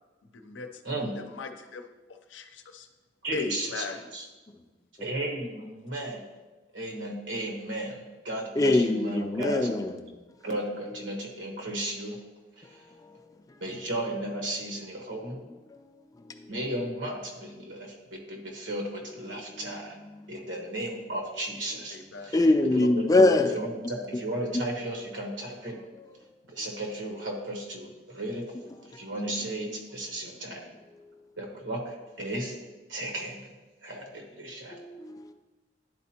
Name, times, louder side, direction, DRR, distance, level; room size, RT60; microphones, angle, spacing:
voice 1, 0.2-2.9 3.3-4.1 21.9-22.3, left 3 dB, 90° left, 0.6 m, -38 dB
voice 2, 3.2-3.8 4.1-4.2 5.0-6.2 6.7-9.7 10.4-12.2 12.6-12.8 13.6-15.4 16.5-20.0 20.3-22.0 22.2-22.4 22.7-25.8 26.5-28.4 28.9-30.6 31.4-32.5 32.9-33.5 33.8-34.8, right 1 dB, 90° right, 1.3 m, -34 dB
voice 3, 8.6-10.0 12.6-13.6 15.7-15.8 19.3-19.4 19.7-19.8 20.1-20.3 22.3-23.5 23.8-23.9 28.9-29.1 30.5-30.6 34.7-35.3, left 2 dB, 20° left, 0.4 m, -24 dB
10.0 x 4.3 x 2.9 m
head